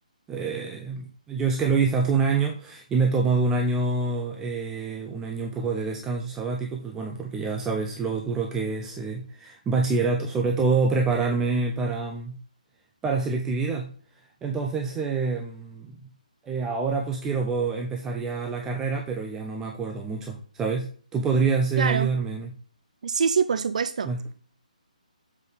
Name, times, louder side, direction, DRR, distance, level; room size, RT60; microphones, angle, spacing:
voice 1, 0.3-12.4 13.0-13.9 14.4-16.1 16.4-22.5 24.1-24.2, right 4 dB, 10° right, 0.6 m, -26 dB
voice 2, 21.8-22.1 23.0-24.3, right 6 dB, 60° right, 0.5 m, -25 dB
7.3 x 5.3 x 3.9 m
hypercardioid pair, 150°, 4 cm